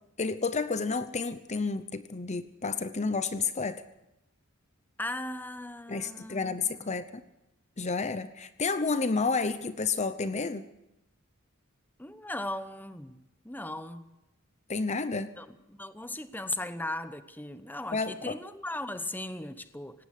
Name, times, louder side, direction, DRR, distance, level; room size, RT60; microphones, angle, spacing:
voice 1, 0.2-3.8 5.9-7.2 7.8-10.7 14.7-15.3 17.9-18.4, left 4 dB, 35° left, 0.8 m, -30 dB
voice 2, 5.0-6.9 12.0-14.1 15.4-20.0, left 1 dB, 10° left, 1.0 m, -38 dB
19.0 x 17.0 x 8.4 m
head